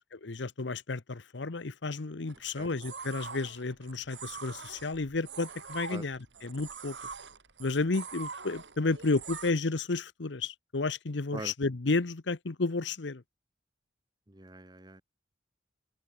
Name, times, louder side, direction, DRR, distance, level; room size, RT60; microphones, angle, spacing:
voice 1, 0.0-7.0 7.6-13.2, left 3 dB, 75° left, 0.9 m, -32 dB
sound 1, 2.3-9.5, right 5 dB, 75° right, 3.6 m, -44 dB
voice 2, 14.3-15.0, right 2 dB, 25° right, 1.5 m, -43 dB
open air
head